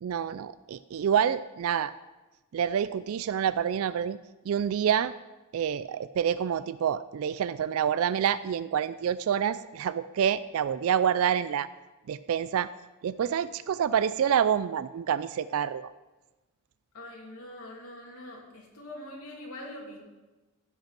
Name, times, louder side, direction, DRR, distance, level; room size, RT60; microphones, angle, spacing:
voice 1, 0.0-1.9 2.5-4.2 4.5-5.1 5.5-11.7 12.1-12.7 13.0-15.9, right 8 dB, 65° right, 15 dB, 0.3 m, -27 dB
voice 2, 16.9-20.0, left 1 dB, 75° left, -2 dB, 2.8 m, -43 dB
15.5 x 5.4 x 5.9 m, 1.1 s
head